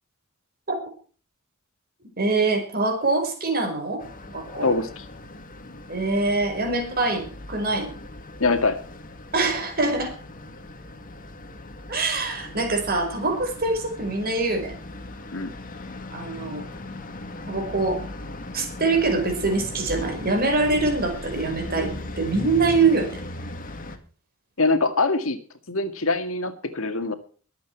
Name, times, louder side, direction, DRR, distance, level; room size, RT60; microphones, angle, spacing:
voice 1, 2.2-4.0 4.3-4.7 5.9-7.9 9.3-10.1 11.9-14.7 16.1-16.6 17.5-18.0 18.5-23.1, right 3 dB, 45° right, 5 dB, 5.2 m, -24 dB
sound 1, 4.0-24.0, left 1 dB, 40° left, 2.1 m, -38 dB
voice 2, 4.6-5.0 8.4-8.8 15.3-15.5 24.6-25.4 25.7-27.1, left 3 dB, 75° left, 8 dB, 2.0 m, -23 dB
22.5 x 8.4 x 4.7 m, 0.39 s
head